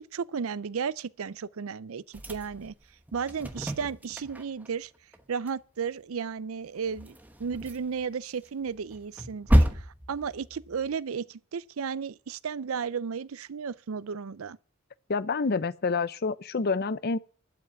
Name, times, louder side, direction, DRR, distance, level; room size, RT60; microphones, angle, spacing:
voice 1, 0.0-2.7 3.1-4.9 5.3-14.6, right 6 dB, 80° right, 0.5 m, -34 dB
sound 1, 2.1-4.7 4.9-5.2 5.5-5.6 5.9-6.0 6.6-8.1 8.4-10.9, equal, 10° right, 1.2 m, -29 dB
voice 2, 15.1-17.2, left 4 dB, 50° left, 0.6 m, -28 dB
12.0 x 5.8 x 9.1 m
head